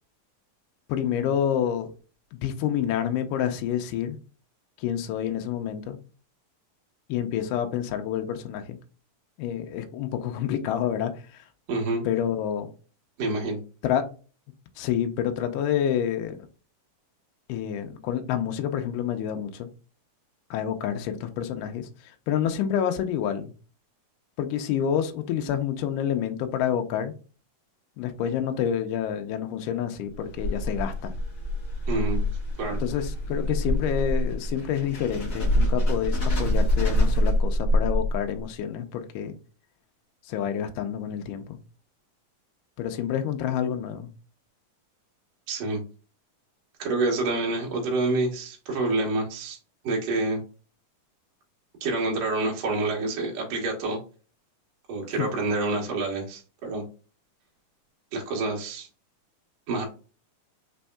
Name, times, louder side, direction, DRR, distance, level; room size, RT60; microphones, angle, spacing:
voice 1, 0.9-1.9 2.3-4.2 4.8-6.0 7.1-8.8 9.4-11.4 12.0-12.7 13.8-14.1 14.8-16.4 17.5-19.7 20.5-23.5 24.4-27.1 28.0-31.1 32.8-39.4 40.3-41.6 42.8-44.1 55.2-55.3, left 9 dB, 80° left, 6 dB, 2.0 m, -28 dB
voice 2, 11.7-12.0 13.2-13.6 31.9-32.2 32.6-32.8 45.5-45.8 46.8-49.6 49.8-50.4 51.8-54.0 54.9-56.8 58.1-58.9 59.7-59.9, right 2 dB, 60° right, -1 dB, 2.0 m, -27 dB
sound 1, 30.1-38.4, left 1 dB, 45° left, 1.0 m, -25 dB
5.2 x 3.4 x 2.3 m, 0.36 s
omnidirectional pair, 4.0 m